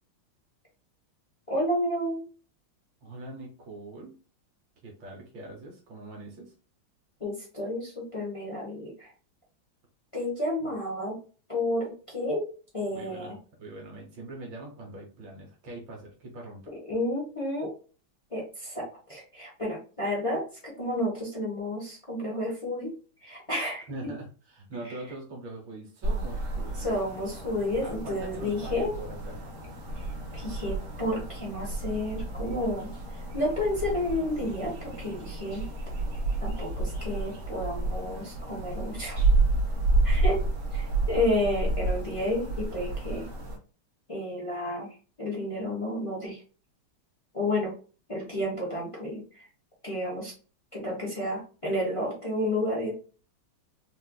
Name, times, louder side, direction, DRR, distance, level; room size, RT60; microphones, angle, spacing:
voice 1, 1.5-2.2 7.2-9.1 10.1-11.2 11.5-12.5 12.7-13.4 16.9-17.7 18.3-22.9 23.2-23.9 24.8-24.9 26.8-28.9 30.0-32.9 33.3-35.6 36.4-39.2 40.0-40.4 40.7-43.3 44.1-44.9 45.2-46.4 47.3-47.7 48.1-49.5 49.8-50.3 50.7-52.9, left 1 dB, 35° left, -4 dB, 0.5 m, -31 dB
voice 2, 3.0-4.1 4.8-6.5 10.6-10.7 12.9-16.7 23.9-26.9 27.8-29.5 39.9-40.5, right 2 dB, 70° right, -1 dB, 1.6 m, -42 dB
sound 1, 26.0-43.6, right 2 dB, 50° right, 1.1 m, -30 dB
4.2 x 2.5 x 2.2 m, 0.37 s
omnidirectional pair, 2.2 m